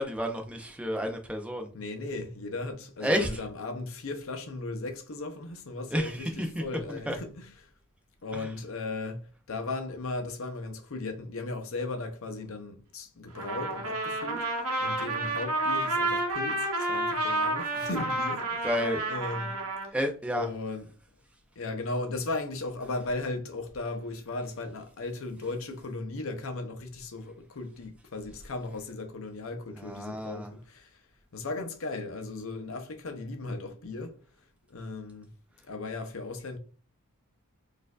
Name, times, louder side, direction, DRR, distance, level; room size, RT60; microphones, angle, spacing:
voice 1, 0.0-1.7 3.0-3.3 5.9-6.5 6.9-7.1 8.3-8.5 18.6-19.0 19.9-20.5 29.8-30.5, equal, 5° right, 0.4 m, -30 dB
voice 2, 1.7-7.7 8.2-9.2 9.5-18.7 19.1-19.6 19.8-19.9 20.3-20.9 21.6-31.0 31.3-34.2 34.7-35.3 35.6-36.6, left 2 dB, 60° left, 0.6 m, -36 dB
Trumpet, 13.3-19.9, right 2 dB, 75° right, 0.8 m, -30 dB
4.2 x 2.5 x 2.3 m
head